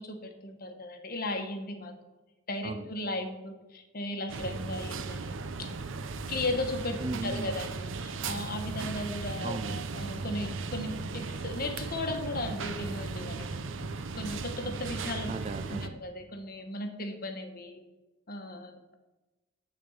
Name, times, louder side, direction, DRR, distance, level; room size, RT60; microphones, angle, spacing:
voice 1, 0.0-1.9 2.5-5.3 5.6-5.7 6.3-13.5 14.1-15.3 15.7-17.8 18.3-18.9, left 2 dB, 45° left, 5 dB, 1.1 m, -36 dB
sound 1, 4.3-15.9, right 4 dB, 70° right, 0.6 m, -37 dB
voice 2, 7.0-7.5 9.4-9.9 15.3-16.0, right 3 dB, 30° right, 11 dB, 0.3 m, -36 dB
9.2 x 4.3 x 7.1 m, 1.1 s
head